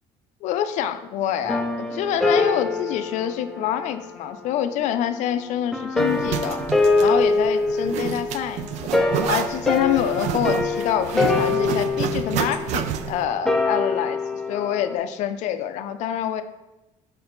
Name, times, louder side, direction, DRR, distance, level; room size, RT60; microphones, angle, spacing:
voice 1, 0.4-6.6 7.0-8.7 9.3-16.4, left 10 dB, 65° left, 10 dB, 0.4 m, -26 dB
sound 1, 1.4-4.4 5.7-14.9, left 3 dB, 5° left, 0.4 m, -24 dB
Zipper (clothing), 6.0-13.2, right 9 dB, 65° right, 0.4 m, -29 dB
6.0 x 4.3 x 3.9 m, 1.0 s
cardioid pair, 170°, 13 cm